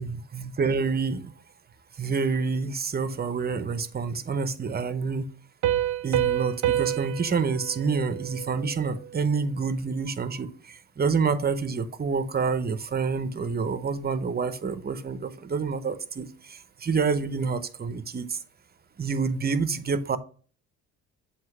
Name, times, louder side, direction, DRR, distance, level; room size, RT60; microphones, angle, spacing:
voice 1, 0.0-1.3 2.0-5.2 6.0-18.4 19.0-20.2, right 5 dB, 30° right, 12 dB, 0.8 m, -28 dB
Piano, 5.6-9.0, right 12 dB, 75° right, 0.6 m, -28 dB
7.8 x 2.9 x 6.0 m, 0.42 s
cardioid pair, 90°, 30 cm